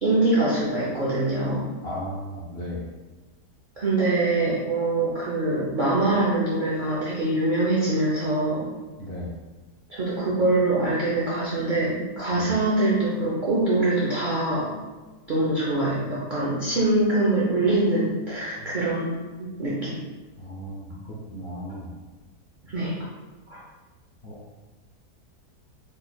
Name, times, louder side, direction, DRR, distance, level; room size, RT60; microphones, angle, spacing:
voice 1, 0.0-1.7 3.8-8.7 9.9-14.7 15.3-20.0 22.7-23.0 23.5-23.6, right 2 dB, 80° right, -7 dB, 0.4 m, -24 dB
voice 2, 1.8-2.9 9.0-9.4 12.3-12.5 18.6-18.7 20.4-21.9 24.2-24.5, equal, 80° left, -5 dB, 0.5 m, -36 dB
3.9 x 3.2 x 2.2 m, 1.3 s
omnidirectional pair, 1.8 m